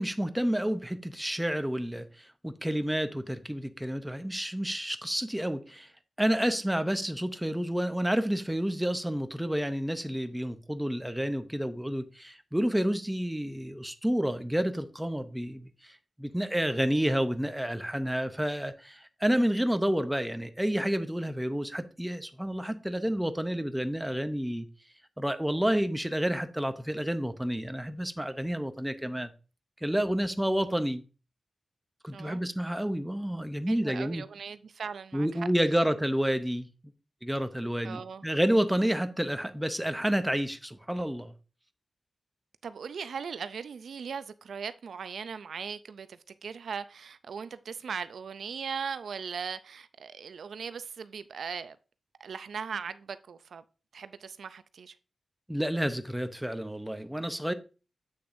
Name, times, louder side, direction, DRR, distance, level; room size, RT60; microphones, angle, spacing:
voice 1, 0.0-5.9 6.2-15.9 16.2-24.7 25.2-29.3 29.8-31.0 32.0-34.2 35.1-36.7 37.2-41.3 55.5-57.5, equal, 5° right, 0.6 m, -29 dB
voice 2, 33.7-35.4 37.8-38.2 42.6-51.8 52.2-53.6 53.9-54.9, right 6 dB, 80° right, 0.4 m, -39 dB
7.9 x 6.7 x 2.6 m
wide cardioid pair, 135°, 0 cm